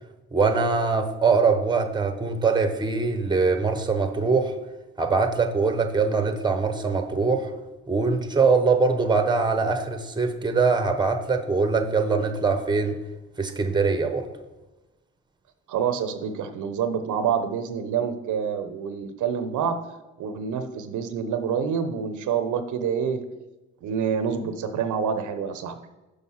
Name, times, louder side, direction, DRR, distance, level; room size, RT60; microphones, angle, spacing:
voice 1, 0.3-4.5 5.0-7.5 7.9-13.0 13.4-14.3, right 4 dB, 15° right, 7 dB, 0.9 m, -22 dB
voice 2, 15.7-19.8 20.2-23.2 23.8-25.8, right 7 dB, 80° right, 9 dB, 0.7 m, -27 dB
6.4 x 5.0 x 5.5 m, 1.1 s
cardioid pair, 90°, 30 cm